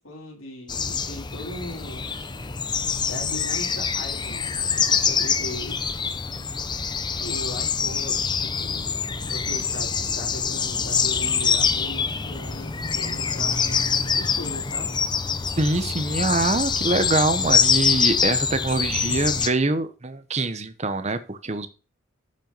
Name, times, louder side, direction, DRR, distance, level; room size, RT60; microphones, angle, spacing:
voice 1, 0.0-2.1 3.0-5.8 7.2-9.0 9.3-15.0, left 1 dB, 85° left, 0 dB, 3.5 m, -38 dB
sound 1, 0.7-19.5, left 6 dB, 20° left, 0.6 m, -25 dB
voice 2, 15.6-21.7, right 2 dB, 35° right, 10 dB, 0.9 m, -24 dB
9.0 x 5.6 x 5.4 m, 0.33 s
head